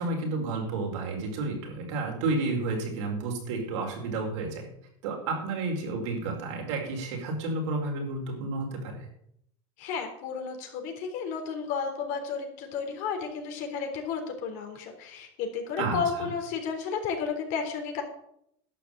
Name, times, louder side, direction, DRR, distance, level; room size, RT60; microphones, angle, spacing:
voice 1, 0.0-4.7 5.0-9.1 15.8-16.3, right 3 dB, 75° right, 1 dB, 4.8 m, -31 dB
voice 2, 9.8-18.0, left 6 dB, 60° left, 4 dB, 3.6 m, -32 dB
11.5 x 6.7 x 8.9 m, 0.73 s
supercardioid pair, 115°, 15 cm